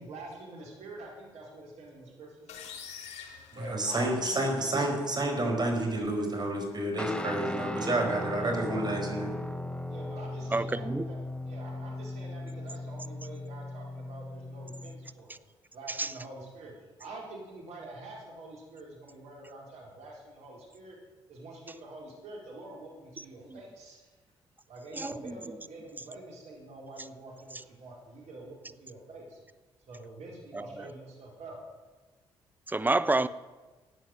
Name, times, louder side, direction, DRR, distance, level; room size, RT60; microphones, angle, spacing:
voice 1, 0.0-2.6 3.5-4.6 8.2-8.6 9.9-15.3 15.7-16.7 17.0-21.0 21.3-24.1 24.7-29.4 29.9-31.6, right 2 dB, 70° right, 4.3 m, -46 dB
sound 1, 2.5-4.4, left 7 dB, 70° left, 1.9 m, -46 dB
voice 2, 3.5-9.3, right 1 dB, 35° right, 4.6 m, -29 dB
Guitar, 7.0-15.1, left 1 dB, 10° left, 1.1 m, -37 dB
voice 3, 10.5-11.1 15.9-16.1 23.2-23.3 24.9-25.4 30.5-30.9 32.7-33.3, right 2 dB, 15° right, 0.8 m, -29 dB
16.0 x 9.1 x 6.6 m
hypercardioid pair, 45°, 12 cm